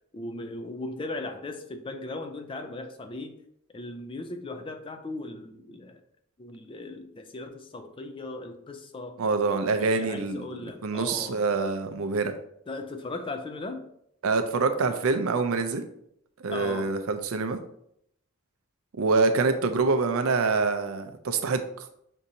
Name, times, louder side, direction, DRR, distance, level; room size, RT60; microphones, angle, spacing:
voice 1, 0.1-3.4 3.7-6.0 6.4-9.2 9.7-11.4 12.7-13.9 16.5-16.9, left 2 dB, 25° left, 7 dB, 0.3 m, -38 dB
voice 2, 9.2-12.3 14.2-15.8 16.4-17.6 19.0-21.6, right 4 dB, 80° right, 8 dB, 0.5 m, -25 dB
6.0 x 2.7 x 2.6 m, 0.73 s
head